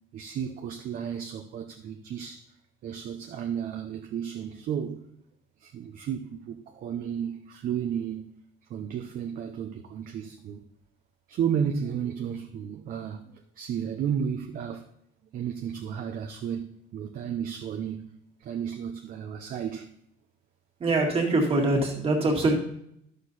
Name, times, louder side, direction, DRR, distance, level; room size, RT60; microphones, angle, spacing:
voice 1, 0.1-2.5 2.8-5.1 5.6-8.3 8.7-10.7 11.3-14.9 15.3-18.1 18.4-19.9, right 8 dB, 45° right, 0.7 m, -33 dB
voice 2, 20.8-22.5, right 2 dB, 30° right, 2.0 m, -23 dB
11.5 x 6.6 x 4.0 m
cardioid pair, 175°, 21 cm